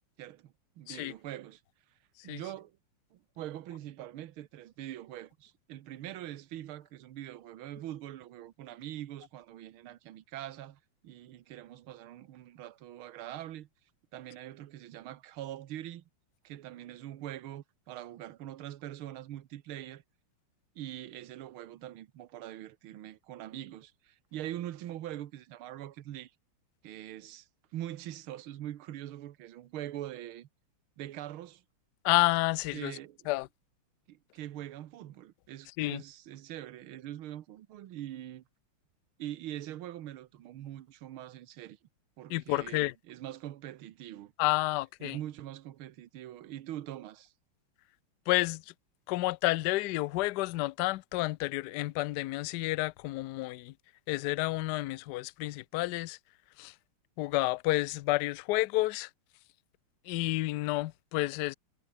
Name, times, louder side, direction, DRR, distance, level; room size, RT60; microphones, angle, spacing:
voice 1, 0.2-1.6 2.2-2.8 3.1-13.7 14.1-16.0 16.4-20.0 20.8-26.3 26.8-30.5 31.0-31.6 32.7-33.3 34.1-38.4 39.2-41.8 42.2-44.3 45.0-47.3, right 12 dB, 75° right, 1.8 m, -43 dB
voice 2, 32.0-33.0 33.3-33.5 35.8-36.0 42.3-42.9 44.4-45.2 48.3-48.6 49.1-53.7 54.1-56.2 56.6-56.7 57.2-59.1 60.1-61.5, left 19 dB, 90° left, 0.9 m, -30 dB
omnidirectional pair, 2.4 m